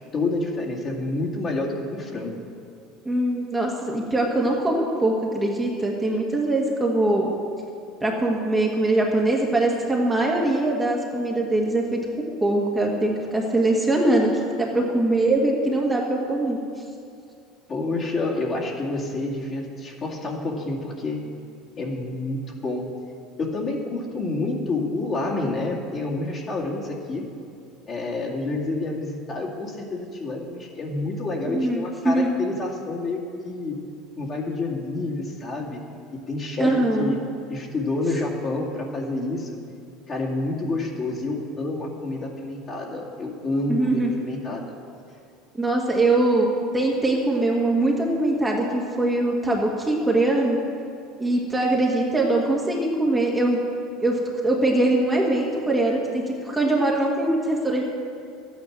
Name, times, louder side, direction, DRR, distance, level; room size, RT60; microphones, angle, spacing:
voice 1, 0.1-2.4 17.7-21.3 21.8-22.9 23.4-27.3 27.9-33.8 34.2-35.8 36.3-37.2 37.5-39.6 40.1-44.8, left 2 dB, 35° left, -3 dB, 2.3 m, -28 dB
voice 2, 3.0-7.3 8.0-14.3 14.6-16.6 31.5-32.3 36.6-37.2 43.7-44.1 45.6-50.6 51.2-53.6 54.0-57.8, right 2 dB, 10° right, -2 dB, 1.6 m, -22 dB
12.5 x 9.4 x 6.0 m, 2.5 s
supercardioid pair, 120°, 0 cm